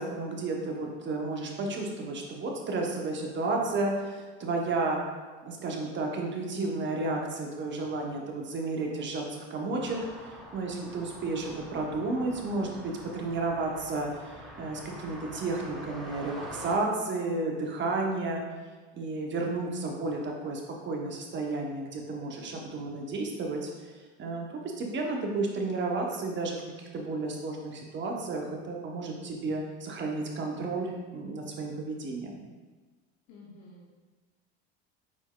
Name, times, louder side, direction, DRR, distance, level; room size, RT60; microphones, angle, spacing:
voice 1, 0.0-5.0 5.4-10.0 10.5-18.4 18.9-23.7 24.2-24.5 24.8-32.4, right 3 dB, 35° right, 1 dB, 0.8 m, -32 dB
sound 1, 9.8-16.8, equal, ahead, 0.7 m, -45 dB
voice 2, 33.3-34.1, left 2 dB, 60° left, -4 dB, 0.8 m, -51 dB
4.4 x 4.2 x 2.3 m, 1.3 s
hypercardioid pair, 85°, 33 cm